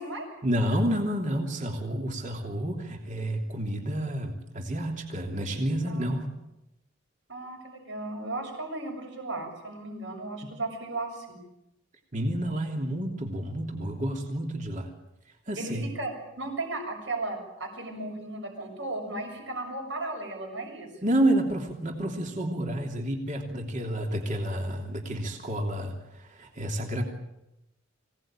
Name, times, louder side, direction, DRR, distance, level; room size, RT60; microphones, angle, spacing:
voice 1, 0.4-6.3 12.1-14.9 15.5-15.9 21.0-27.0, right 1 dB, 40° right, 2 dB, 3.1 m, -29 dB
voice 2, 5.9-6.2 7.3-11.4 15.6-20.9, right 2 dB, 70° right, 2 dB, 7.0 m, -35 dB
25.0 x 18.0 x 9.0 m, 0.90 s
head